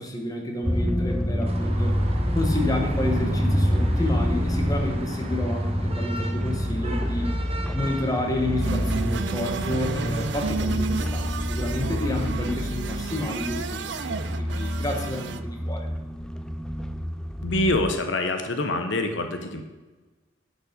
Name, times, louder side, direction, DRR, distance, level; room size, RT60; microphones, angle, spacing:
voice 1, 0.0-1.9 2.3-7.3 7.7-15.9, left 1 dB, 20° left, 2 dB, 1.3 m, -30 dB
sound 1, 0.6-17.9, equal, 5° left, 0.3 m, -27 dB
sound 2, 1.4-15.4, right 2 dB, 35° right, 1.0 m, -41 dB
sound 3, 8.6-15.4, right 5 dB, 70° right, 0.5 m, -32 dB
voice 2, 17.4-19.6, left 2 dB, 80° left, 6 dB, 1.0 m, -25 dB
10.5 x 5.4 x 5.2 m, 1.2 s
head